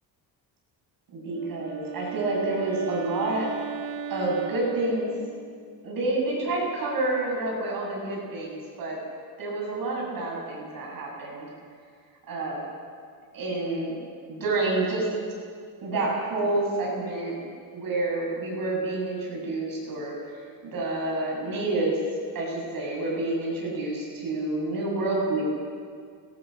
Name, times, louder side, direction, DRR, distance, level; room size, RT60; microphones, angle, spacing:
voice 1, 1.1-3.5 4.1-5.1 5.8-9.0 9.4-11.5 12.3-12.7 13.3-13.9 14.3-15.1 15.8-17.4 17.7-20.1 20.4-22.0 22.3-25.4, right 2 dB, 50° right, -2 dB, 7.9 m, -28 dB
Wind instrument woodwind instrument, 1.2-5.7, right 7 dB, 85° right, 1.4 m, -37 dB
29.5 x 21.5 x 6.7 m, 2.2 s
cardioid pair, 160°, 43 cm